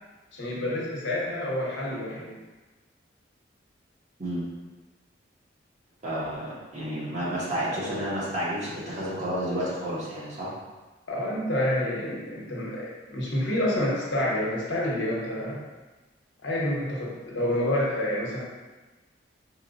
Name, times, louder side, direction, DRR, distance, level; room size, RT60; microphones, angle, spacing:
voice 1, 0.3-2.3 11.1-15.6 16.4-18.4, left 1 dB, 70° left, -5 dB, 0.9 m, -28 dB
voice 2, 6.0-10.5, equal, 35° right, -9 dB, 1.0 m, -31 dB
4.4 x 2.1 x 2.5 m, 1.2 s
head